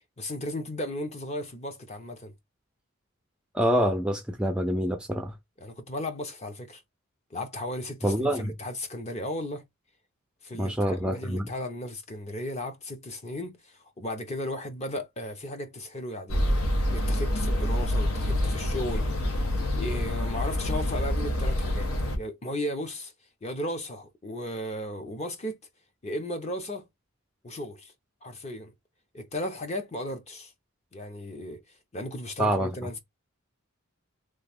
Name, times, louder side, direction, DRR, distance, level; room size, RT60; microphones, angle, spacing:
voice 1, 0.2-2.3 5.6-6.8 7.3-9.6 10.4-19.1 19.7-21.9 22.2-23.1 23.4-25.6 26.0-26.9 27.4-27.9 28.2-28.7 29.1-30.5 30.9-31.6 31.9-33.0, left 1 dB, 30° left, 0.7 m, -35 dB
voice 2, 3.5-5.3 8.0-8.5 10.6-11.5 32.4-32.7, equal, 5° right, 0.4 m, -26 dB
sound 1, 16.3-22.2, left 1 dB, 75° left, 0.9 m, -27 dB
3.1 x 2.4 x 3.4 m
head